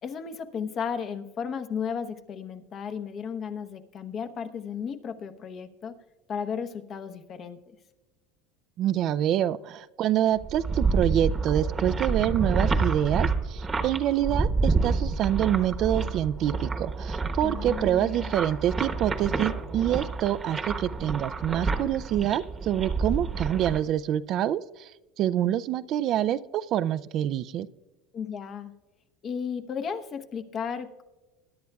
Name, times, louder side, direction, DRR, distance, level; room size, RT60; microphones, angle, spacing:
voice 1, 0.0-5.9 6.3-7.6 17.4-18.2 28.1-28.7 29.2-31.0, left 6 dB, 40° left, 8 dB, 1.0 m, -34 dB
voice 2, 8.8-24.9 25.2-27.7, right 11 dB, 50° right, 14 dB, 0.4 m, -26 dB
sound 1, 10.4-23.8, right 4 dB, 25° right, 1.1 m, -28 dB
21.5 x 10.5 x 2.3 m, 1.1 s
supercardioid pair, 105°, 0 cm